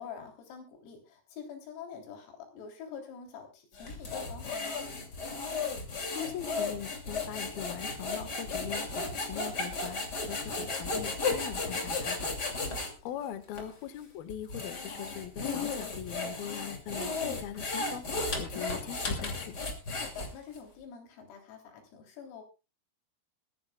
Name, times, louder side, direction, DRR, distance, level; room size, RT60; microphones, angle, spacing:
voice 1, 0.0-4.9 12.6-12.9 19.9-22.4, left 6 dB, 90° left, 3 dB, 6.2 m, -46 dB
sound 1, 3.8-12.9 13.5-13.7 14.3-20.6, left 3 dB, 30° left, 1.9 m, -34 dB
voice 2, 6.1-12.4 13.0-18.1 18.4-19.6, left 11 dB, 65° left, 10 dB, 2.7 m, -41 dB
20.5 x 14.5 x 2.3 m, 0.29 s
omnidirectional pair, 5.9 m